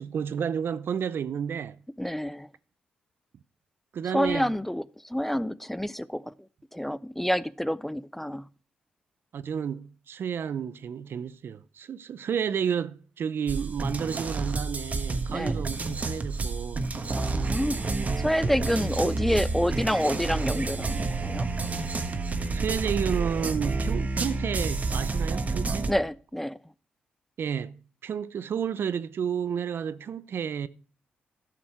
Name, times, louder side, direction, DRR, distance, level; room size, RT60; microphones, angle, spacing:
voice 1, 0.0-1.8 3.9-4.5 9.3-16.8 19.0-19.1 22.5-25.9 27.4-30.7, right 7 dB, 65° right, 0.6 m, -31 dB
voice 2, 2.0-2.5 4.1-6.3 6.7-8.5 15.3-15.7 17.2-17.9 18.2-21.5 25.9-26.6, equal, 5° left, 0.4 m, -28 dB
sound 1, 13.5-25.9, right 3 dB, 40° right, 1.2 m, -29 dB
12.0 x 6.7 x 4.4 m
cardioid pair, 80°, 4 cm